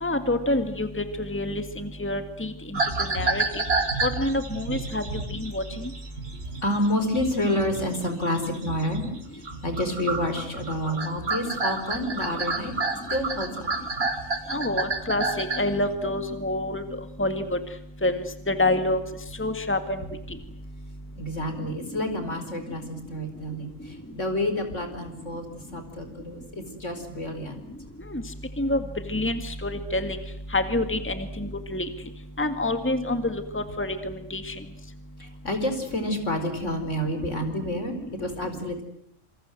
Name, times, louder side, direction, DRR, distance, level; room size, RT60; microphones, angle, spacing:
voice 1, 0.0-2.8 3.1-3.6 4.0-5.0 5.3-5.6 14.5-16.8 17.2-17.6 18.0-19.0 19.4-20.0 28.1-28.2 28.6-28.8 29.1-30.2 30.5-31.9 32.4-34.0 34.3-34.5, left 1 dB, 10° left, 8 dB, 2.0 m, -27 dB
sound 1, 2.7-9.2 9.4-15.8, right 3 dB, 50° right, 2.8 m, -30 dB
voice 2, 6.6-9.1 9.6-12.7 13.1-13.7 21.2-25.4 25.7-27.6 35.2-38.8, left 1 dB, 70° left, 7 dB, 4.9 m, -29 dB
27.5 x 26.5 x 7.8 m, 0.68 s
omnidirectional pair, 1.3 m